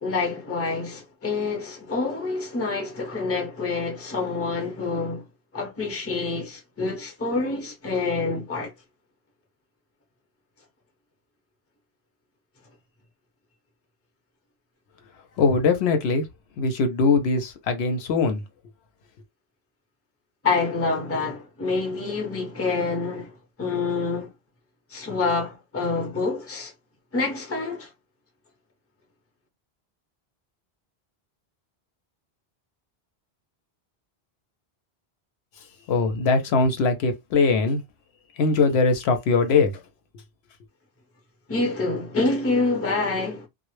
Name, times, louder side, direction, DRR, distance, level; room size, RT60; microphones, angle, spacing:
voice 1, 0.0-5.2 5.5-8.7 20.4-24.3 24.9-26.7 27.1-27.9 41.5-43.5, left 3 dB, 15° left, 0.6 m, -27 dB
voice 2, 15.4-16.2 16.6-18.4 35.9-37.8 38.4-39.8, left 4 dB, 80° left, 0.8 m, -21 dB
2.0 x 2.0 x 3.0 m
omnidirectional pair, 1.1 m